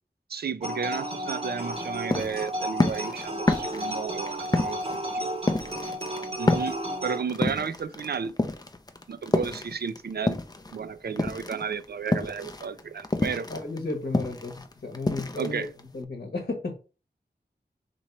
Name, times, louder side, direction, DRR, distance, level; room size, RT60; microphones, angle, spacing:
voice 1, 0.3-5.3 6.4-8.3 9.1-10.4 10.7-13.5 15.4-15.7, right 6 dB, 60° right, 0.4 m, -33 dB
sound 1, 0.6-7.2, equal, 30° right, 0.9 m, -33 dB
sound 2, 1.7-10.8 11.1-16.0, left 2 dB, 20° left, 0.5 m, -28 dB
voice 2, 13.5-14.5 14.8-15.6 15.9-16.7, left 3 dB, 55° left, 1.0 m, -33 dB
3.0 x 2.9 x 4.4 m
wide cardioid pair, 45°, 18 cm